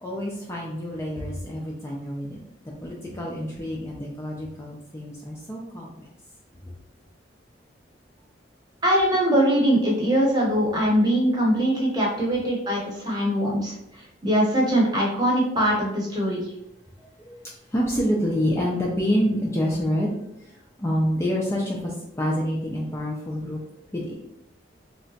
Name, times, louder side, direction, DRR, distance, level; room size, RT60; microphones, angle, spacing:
voice 1, 0.0-2.4 2.6-6.1 6.6-6.7 17.3-17.4 17.7-20.1 20.4-23.6 23.9-24.1, equal, 15° left, -3 dB, 0.4 m, -27 dB
voice 2, 8.8-13.7 14.2-16.4, equal, 20° right, -3 dB, 0.8 m, -22 dB
3.3 x 2.9 x 2.7 m, 0.82 s
head